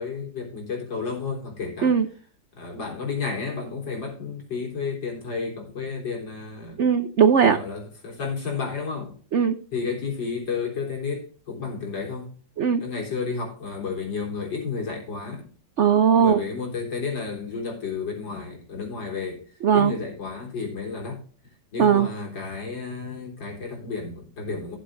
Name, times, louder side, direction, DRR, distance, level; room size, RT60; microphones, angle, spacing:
voice 1, 0.0-1.9 2.6-6.8 7.4-9.2 9.7-12.3 12.8-15.5 16.2-19.4 19.7-21.2 21.7-24.8, left 5 dB, 70° left, 4.4 m, -31 dB
voice 2, 6.8-7.6 9.3-9.6 12.6-12.8 15.8-16.4 19.6-20.0 21.8-22.1, right 7 dB, 85° right, 0.6 m, -18 dB
16.5 x 7.4 x 2.6 m
omnidirectional pair, 2.1 m